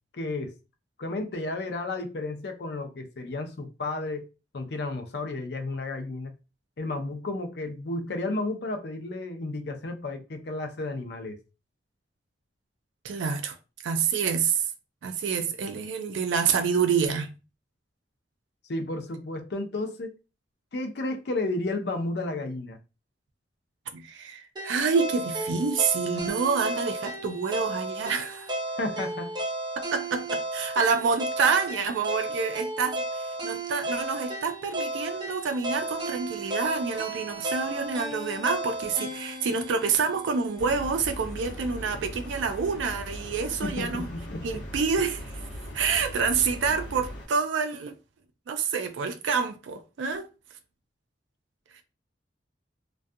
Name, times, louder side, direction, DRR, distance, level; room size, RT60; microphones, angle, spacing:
voice 1, 0.1-0.5 1.0-4.3 4.5-6.3 6.8-11.4 18.7-20.1 20.7-22.8 28.8-29.3 43.6-44.6, left 2 dB, 60° left, 0.5 m, -32 dB
voice 2, 13.0-13.6 13.8-14.6 15.0-17.3 23.9-28.5 29.9-44.1 44.4-45.3 45.7-47.9 48.5-50.3 51.7-51.8, right 5 dB, 85° right, 0.4 m, -27 dB
sound 1, 24.6-40.7, right 1 dB, 25° right, 0.5 m, -34 dB
sound 2, 40.6-47.3, equal, 80° left, 0.9 m, -39 dB
2.4 x 2.2 x 2.6 m
head